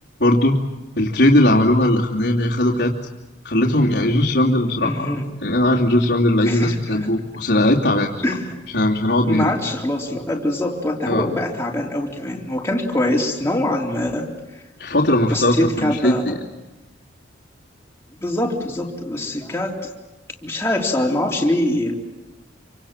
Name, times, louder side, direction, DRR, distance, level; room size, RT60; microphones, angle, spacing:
voice 1, 0.2-0.6 0.9-2.9 3.4-5.1 5.4-8.1 8.7-9.5 11.0-11.3 14.8-16.3, left 1 dB, 60° left, -8 dB, 2.9 m, -18 dB
voice 2, 4.8-5.3 6.4-7.1 8.2-8.5 9.2-14.3 15.3-16.4 18.2-19.8 20.4-22.0, left 1 dB, 15° left, 0 dB, 3.5 m, -23 dB
27.0 x 25.5 x 7.4 m, 1.1 s
head